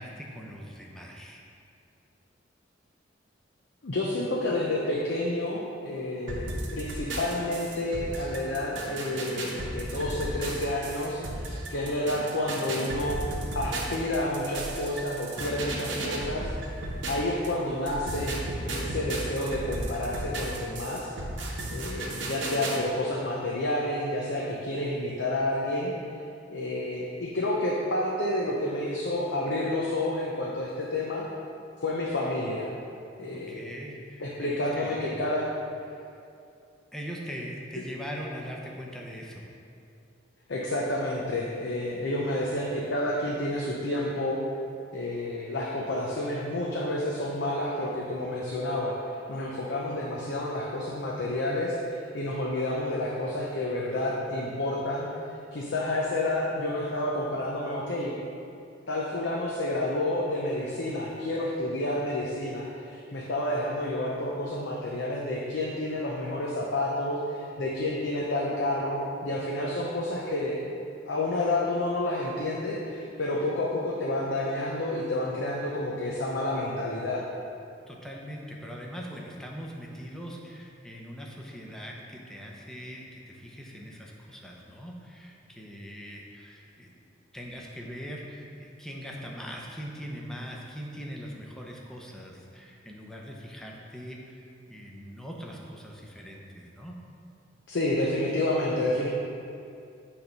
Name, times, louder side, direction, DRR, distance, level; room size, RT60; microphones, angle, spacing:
voice 1, 0.0-1.4 33.3-35.2 35.9-36.0 36.9-39.5 77.9-86.9 87.3-97.0, equal, 5° left, -2 dB, 0.7 m, -41 dB
voice 2, 3.8-6.5 6.7-13.3 13.5-16.5 17.1-18.4 18.7-21.1 21.7-25.9 26.5-31.3 31.8-32.7 33.2-33.7 34.2-35.5 40.5-44.4 44.9-48.9 49.3-55.1 55.5-58.2 58.9-70.7 71.1-77.2 97.7-99.1, left 1 dB, 70° left, -3 dB, 0.7 m, -29 dB
sound 1, 6.3-17.5 17.9-22.8, right 1 dB, 80° right, 1.1 m, -34 dB
8.5 x 3.4 x 5.2 m, 2.5 s
head